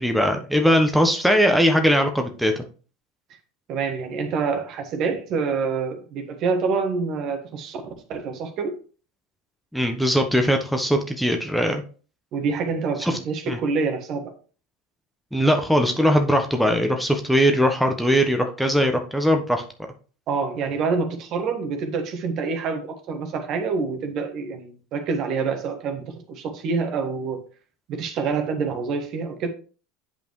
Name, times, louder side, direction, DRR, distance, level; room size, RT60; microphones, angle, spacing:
voice 1, 0.0-2.6 9.7-11.8 13.0-13.2 13.5-13.6 15.3-19.6, equal, ahead, 1.0 m, -20 dB
voice 2, 3.7-7.8 8.1-8.8 12.3-14.3 20.3-27.4 27.9-29.5, right 5 dB, 50° right, 1.5 m, -26 dB
8.7 x 5.2 x 3.2 m
hypercardioid pair, 80°, 0 cm